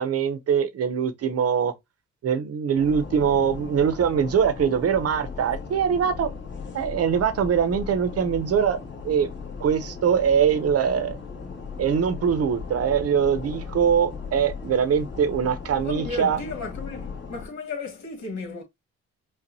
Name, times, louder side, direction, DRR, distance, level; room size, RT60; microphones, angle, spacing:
voice 1, 0.0-1.7 2.2-6.3 6.7-8.8 9.0-9.3 9.6-11.2 11.8-16.4, right 7 dB, 50° right, 0.8 m, -22 dB
sound 1, 2.8-17.5, left 5 dB, 40° left, 1.6 m, -37 dB
voice 2, 15.8-18.6, left 3 dB, 65° left, 1.9 m, -34 dB
5.3 x 2.4 x 2.7 m
cardioid pair, 90°, 30 cm